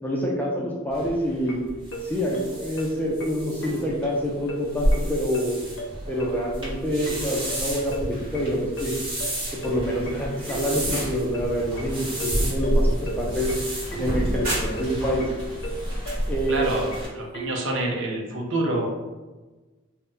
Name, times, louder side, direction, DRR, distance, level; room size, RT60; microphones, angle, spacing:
voice 1, 0.0-1.6 2.0-5.5 6.1-9.0 9.6-13.5 14.0-15.3 16.3-16.7, equal, 10° left, -3 dB, 0.4 m, -27 dB
sound 1, 0.9-17.1, equal, 25° right, 1.1 m, -30 dB
sound 2, 1.5-17.6, right 2 dB, 70° left, 0.6 m, -35 dB
sound 3, 10.5-15.1 15.5-16.3, right 1 dB, 45° right, 1.4 m, -37 dB
voice 2, 16.5-16.9 17.1-18.9, right 1 dB, 65° right, 0 dB, 0.6 m, -27 dB
2.7 x 2.1 x 3.5 m, 1.2 s
head